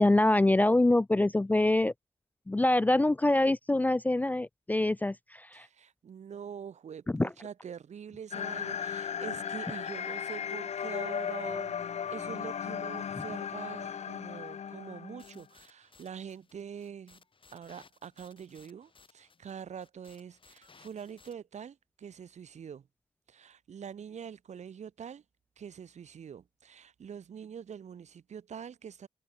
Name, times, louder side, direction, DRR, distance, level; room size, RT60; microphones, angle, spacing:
voice 1, 0.0-1.9 2.5-5.7 7.1-7.3, left 2 dB, 15° left, 0.4 m, -25 dB
voice 2, 5.5-17.2 17.5-22.9 23.3-25.2 25.6-29.1, right 7 dB, 75° right, 4.8 m, -45 dB
sound 1, 8.3-15.4, left 8 dB, 70° left, 1.1 m, -36 dB
sound 2, 15.2-21.3, left 4 dB, 45° left, 5.5 m, -61 dB
cardioid pair, 75°, 12 cm